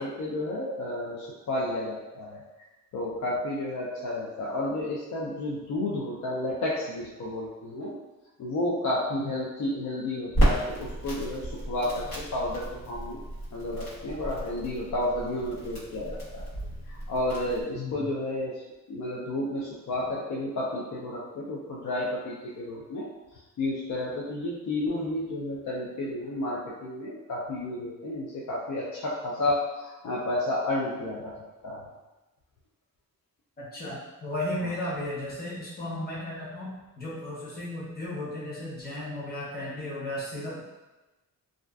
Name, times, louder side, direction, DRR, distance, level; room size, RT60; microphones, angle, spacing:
voice 1, 0.0-2.4 2.9-7.9 8.4-13.2 13.5-16.6 16.9-18.6 18.9-23.1 23.6-31.3 31.6-31.9 34.6-34.7, left 1 dB, 60° left, -5 dB, 0.4 m, -31 dB
Crackle, 10.3-17.6, right 1 dB, 85° left, 1.2 m, -32 dB
voice 2, 17.7-18.1 33.6-36.7 37.0-40.6, left 1 dB, 25° left, -7 dB, 0.8 m, -35 dB
2.4 x 2.3 x 2.3 m, 1.1 s
wide cardioid pair, 120°, 34 cm